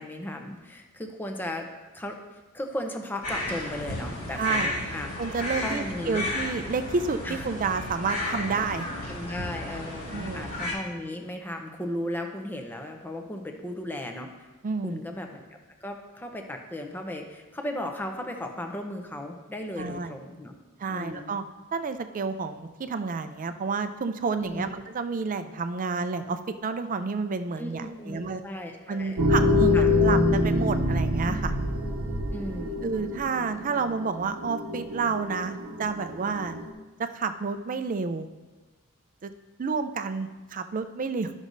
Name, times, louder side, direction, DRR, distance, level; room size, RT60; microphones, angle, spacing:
voice 1, 0.0-1.7 1.9-2.1 2.5-5.2 5.6-6.3 7.2-7.4 9.1-14.3 14.8-15.4 15.8-20.6 20.9-21.4 24.4-24.7 27.6-29.2 29.7-29.9 32.3-32.9, left 1 dB, 10° left, 3 dB, 0.7 m, -36 dB
sound 1, 3.2-10.7, left 1 dB, 80° left, 2.4 m, -33 dB
voice 2, 4.3-4.7 5.2-8.9 10.1-10.4 14.6-15.0 19.8-20.2 20.8-21.4 21.7-28.4 28.9-31.5 32.8-36.6 37.0-38.3 39.2-39.3 39.6-41.3, right 4 dB, 40° right, 9 dB, 0.4 m, -30 dB
sound 2, 29.2-36.7, left 2 dB, 70° right, 0.8 m, -26 dB
12.5 x 6.2 x 2.6 m, 1.2 s
head